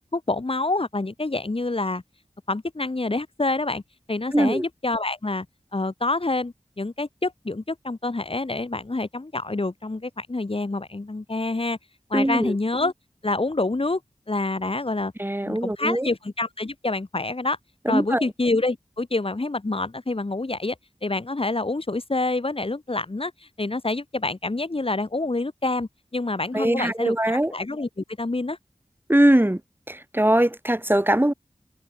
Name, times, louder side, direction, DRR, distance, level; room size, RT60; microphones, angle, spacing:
voice 1, 0.1-2.0 2.5-3.8 4.1-5.4 5.7-11.8 12.1-12.9 13.2-14.0 14.3-15.1 15.4-17.6 17.9-20.7 21.0-23.3 23.6-28.6, left 2 dB, 50° left, 5.2 m, -27 dB
voice 2, 4.3-4.6 12.1-12.5 15.2-16.1 17.9-18.2 26.5-27.5 29.1-29.6 29.9-31.3, right 1 dB, 15° right, 5.9 m, -21 dB
wide cardioid pair, 50°, 12 cm